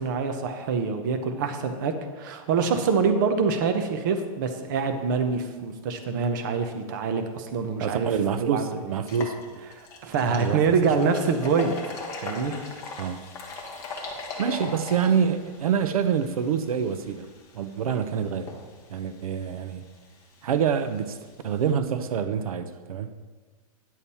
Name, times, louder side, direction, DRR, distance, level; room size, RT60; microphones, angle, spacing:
voice 1, 0.0-8.1 8.4-8.8 9.7-11.7 12.2-12.5, right 5 dB, 30° right, 6 dB, 0.7 m, -25 dB
sound 1, 7.7-7.8 8.2-8.3 8.9-21.7, left 3 dB, 15° left, 1.0 m, -41 dB
voice 2, 7.8-9.6 10.3-10.6 13.0-13.2 14.4-17.3 17.5-18.5 18.9-19.8 20.4-21.2 21.4-23.1, right 7 dB, 70° right, 10 dB, 0.7 m, -26 dB
10.0 x 7.1 x 4.2 m, 1.4 s
hypercardioid pair, 175°, 19 cm